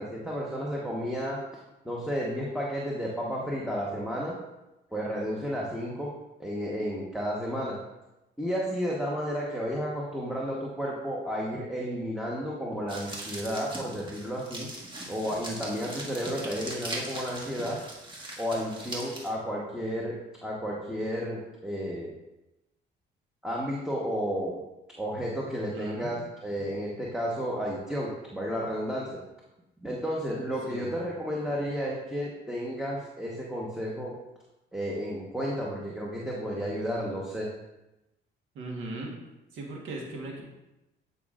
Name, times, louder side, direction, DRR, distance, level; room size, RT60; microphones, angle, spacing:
voice 1, 0.0-1.4 1.8-4.4 4.9-6.1 6.4-7.8 8.4-14.7 15.1-17.8 18.4-22.1 23.4-24.6 25.0-29.2 29.8-34.2 34.7-37.5, equal, 5° right, -4 dB, 1.2 m, -32 dB
sound 1, 12.9-19.3, right 1 dB, 25° right, 1.6 m, -40 dB
voice 2, 25.5-26.1 26.6-26.8 30.7-31.0 38.5-39.2 39.5-40.4, right 2 dB, 80° right, -1 dB, 1.4 m, -38 dB
9.2 x 5.2 x 2.5 m, 0.96 s
cardioid pair, 90°, 20 cm